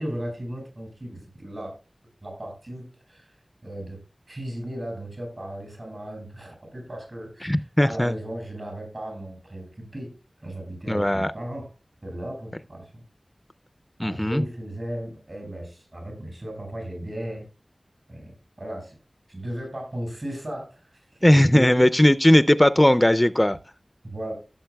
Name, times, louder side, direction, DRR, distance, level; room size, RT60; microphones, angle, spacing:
voice 1, 0.0-1.8 2.2-3.4 3.6-4.0 4.3-11.7 12.0-12.9 14.0-17.4 18.1-19.0 19.3-21.9 24.0-24.3, right 1 dB, 60° right, 6.1 m, -36 dB
voice 2, 7.4-8.1 10.9-11.3 14.0-14.4 21.2-23.6, left 1 dB, 15° left, 0.4 m, -18 dB
16.0 x 7.3 x 2.2 m
wide cardioid pair, 55°, 0 cm